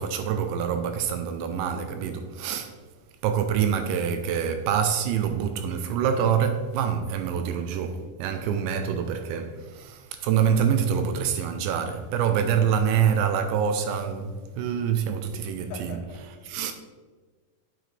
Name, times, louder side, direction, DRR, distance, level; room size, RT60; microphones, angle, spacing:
voice 1, 0.0-2.8 3.2-16.0 16.5-16.7, right 8 dB, 80° right, 2.7 m, -26 dB
voice 2, 15.4-16.7, left 5 dB, 80° left, 2.7 m, -44 dB
9.1 x 7.5 x 3.3 m
omnidirectional pair, 5.5 m